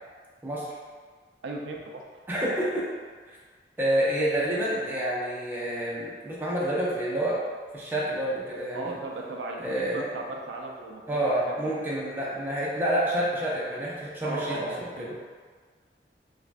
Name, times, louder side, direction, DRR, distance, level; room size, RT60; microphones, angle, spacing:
voice 1, 1.4-2.0 8.7-11.2 14.2-15.2, right 2 dB, 90° right, 0 dB, 0.4 m, -36 dB
voice 2, 2.3-2.8 3.3-3.4 3.8-7.4 7.7-8.9 9.6-10.0 11.1-15.1, right 1 dB, 10° right, -6 dB, 0.5 m, -28 dB
3.2 x 2.1 x 2.5 m, 1.5 s
head